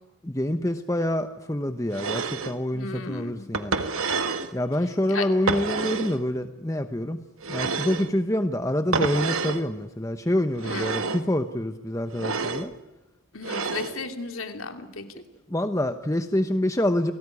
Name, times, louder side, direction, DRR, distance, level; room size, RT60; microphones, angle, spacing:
voice 1, 0.2-3.8 4.5-7.2 7.5-12.7 15.5-17.1, left 1 dB, 15° left, 8 dB, 0.9 m, -26 dB
sound 1, 1.9-2.6 3.5-4.5 5.5-6.2 7.4-8.1 8.9-9.6 10.6-11.3 12.1-12.7 13.4-14.0, right 4 dB, 85° right, 1.7 m, -28 dB
voice 2, 2.7-3.5 5.1-5.3 10.6-11.0 13.3-15.0, left 4 dB, 80° left, 6 dB, 2.8 m, -34 dB
29.5 x 19.0 x 9.8 m, 0.99 s
head